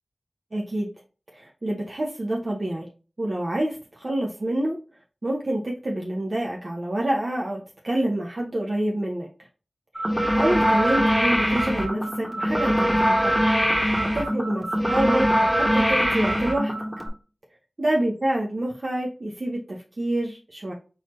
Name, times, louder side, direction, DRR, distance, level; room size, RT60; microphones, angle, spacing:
voice 1, 0.5-0.9 1.3-2.9 3.2-4.8 5.2-9.3 10.3-13.4 14.0-16.7 17.8-20.7, right 1 dB, 55° right, -2 dB, 0.9 m, -27 dB
sound 1, 9.9-17.1, equal, 5° right, 1.3 m, -22 dB
4.4 x 4.0 x 3.1 m, 0.34 s
wide cardioid pair, 70°, 0 cm